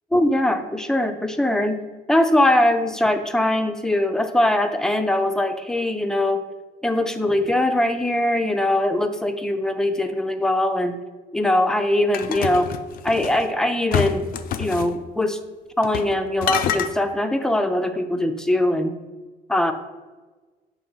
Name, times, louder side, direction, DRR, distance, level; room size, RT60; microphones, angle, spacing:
voice 1, 0.1-1.8 2.1-6.4 6.8-11.0 11.3-12.7 13.0-14.3 14.6-15.4 15.8-18.9 19.5-19.7, left 1 dB, 5° left, 7 dB, 0.5 m, -21 dB
sound 1, 12.1-13.4 13.9-14.9 15.8-16.1 16.4-16.9, left 9 dB, 60° left, 0.4 m, -26 dB
6.8 x 2.6 x 5.5 m, 1.3 s
cardioid pair, 110°, 17 cm